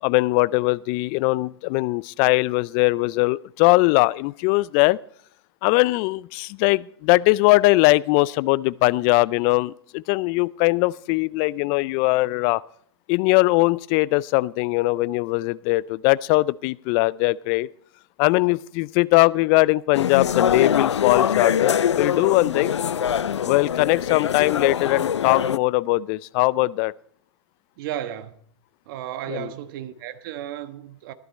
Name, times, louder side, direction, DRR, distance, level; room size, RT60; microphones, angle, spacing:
voice 1, 0.0-5.0 5.6-12.6 13.1-17.7 18.2-22.7 23.4-26.9 29.3-29.5, left 22 dB, 35° left, 0.4 m, -20 dB
sound 1, 19.9-25.6, left 8 dB, 85° left, 0.5 m, -23 dB
voice 2, 27.8-28.3 28.8-31.1, right 11 dB, 50° right, 1.3 m, -33 dB
14.5 x 12.5 x 4.2 m
hypercardioid pair, 120°, 14 cm